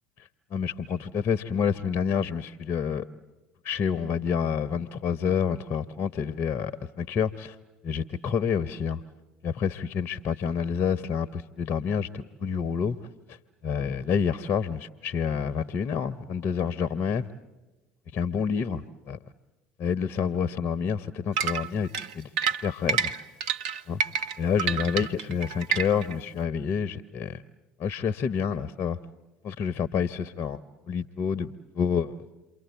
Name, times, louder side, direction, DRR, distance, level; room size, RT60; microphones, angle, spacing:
voice 1, 0.2-3.0 3.6-6.7 7.0-7.6 7.8-9.0 9.4-13.0 13.3-13.4 13.6-17.3 18.1-19.2 19.8-23.1 23.9-24.0 24.4-27.4 27.8-29.0 29.4-30.6 30.9-32.2, left 7 dB, 45° left, 16 dB, 0.8 m, -28 dB
sound 1, 21.4-26.1, right 7 dB, 65° right, 1.0 m, -28 dB
28.5 x 24.0 x 8.2 m, 1.1 s
figure-of-eight pair, 70°, 5 cm